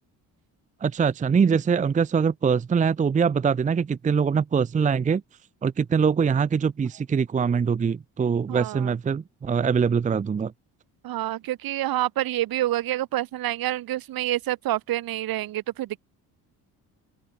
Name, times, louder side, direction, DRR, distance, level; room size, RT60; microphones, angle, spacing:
voice 1, 0.8-5.2 5.6-10.5, right 6 dB, 20° right, 0.6 m, -23 dB
voice 2, 8.5-9.0 11.0-16.0, right 14 dB, 70° right, 5.9 m, -28 dB
open air
cardioid pair, 140°, 36 cm